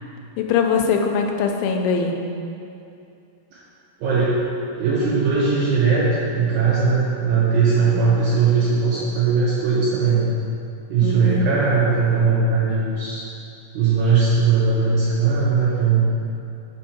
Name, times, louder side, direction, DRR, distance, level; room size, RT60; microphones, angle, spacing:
voice 1, 0.4-2.2 7.9-8.1 11.0-11.5, left 5 dB, 90° left, 3 dB, 2.4 m, -21 dB
voice 2, 4.0-4.4 4.8-6.0 6.3-10.4 10.9-13.2 13.7-16.2, right 5 dB, 75° right, -7 dB, 1.8 m, -19 dB
5.5 x 4.5 x 4.2 m, 2.6 s
omnidirectional pair, 4.1 m